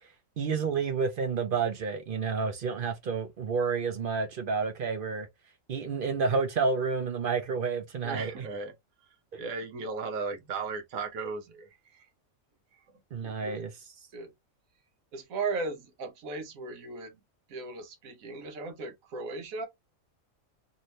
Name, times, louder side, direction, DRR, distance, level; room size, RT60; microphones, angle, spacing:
voice 1, 0.4-5.3 5.7-8.5 13.1-13.7, right 5 dB, 55° right, 0.6 m, -30 dB
voice 2, 8.0-8.8 9.4-12.1 13.2-13.7 14.1-14.3 15.1-17.2 17.5-19.7, right 4 dB, 75° right, 1.2 m, -36 dB
2.7 x 2.7 x 3.1 m
omnidirectional pair, 1.5 m